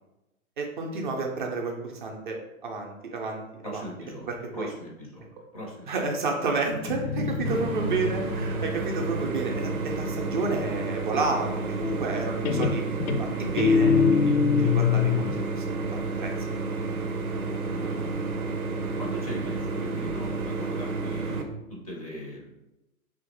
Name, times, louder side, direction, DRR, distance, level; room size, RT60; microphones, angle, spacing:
voice 1, 0.6-3.9 4.3-4.7 5.9-12.8 13.2-16.3, right 3 dB, 35° right, 1 dB, 0.5 m, -31 dB
voice 2, 3.6-4.3 4.5-5.3 5.5-5.9 7.2-7.6 17.7-18.2 19.0-22.5, left 1 dB, 30° left, -2 dB, 0.4 m, -39 dB
Guitar, 6.7-10.3 11.8-12.2 12.5-15.4, left 6 dB, 80° left, 0.5 m, -25 dB
sound 1, 7.4-21.4, right 3 dB, 85° right, 0.6 m, -31 dB
2.8 x 2.5 x 3.7 m, 0.94 s
figure-of-eight pair, 120°, 43 cm